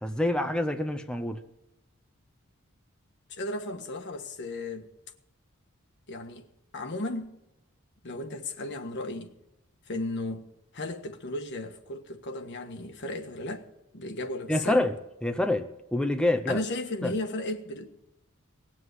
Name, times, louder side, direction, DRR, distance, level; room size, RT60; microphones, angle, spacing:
voice 1, 0.0-1.4 14.5-14.9 15.2-16.6 17.0-17.1, left 1 dB, 5° left, 0.7 m, -27 dB
voice 2, 3.3-4.8 6.1-6.5 6.7-7.3 8.0-9.3 9.9-10.5 10.7-13.7 13.9-14.9 16.5-17.9, left 2 dB, 55° left, 1.5 m, -34 dB
19.0 x 7.7 x 8.0 m
head